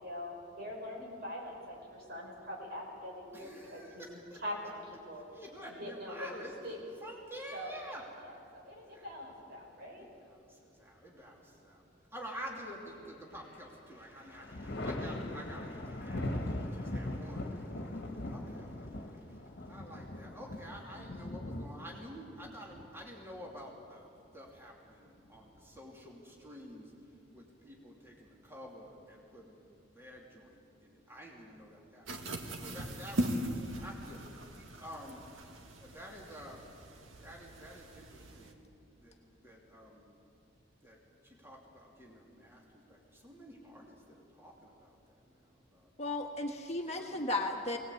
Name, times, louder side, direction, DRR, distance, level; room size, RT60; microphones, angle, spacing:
voice 1, 0.0-4.0 4.4-5.2 5.6-6.3 6.6-6.8 7.5-7.8 8.2-8.4 8.7-10.1, left 1 dB, 55° right, -1 dB, 5.6 m, -43 dB
voice 2, 3.3-4.4 5.3-6.7 7.0-8.0 8.8-9.1 11.0-11.8 12.1-26.9 27.3-32.1 32.5-35.2 35.8-36.6 37.2-38.7 39.0-40.1 40.8-41.0 41.2-45.9 46.8-47.3, equal, 15° right, -3 dB, 2.9 m, -49 dB
Thunder, 12.9-13.6 14.0-23.6 25.1-25.9, left 1 dB, 55° left, 1.6 m, -40 dB
sound 1, 32.1-38.5, right 1 dB, 85° right, 1.8 m, -40 dB
voice 3, 46.0-47.8, left 2 dB, 35° left, 2 dB, 1.5 m, -35 dB
21.5 x 19.0 x 8.4 m, 2.5 s
head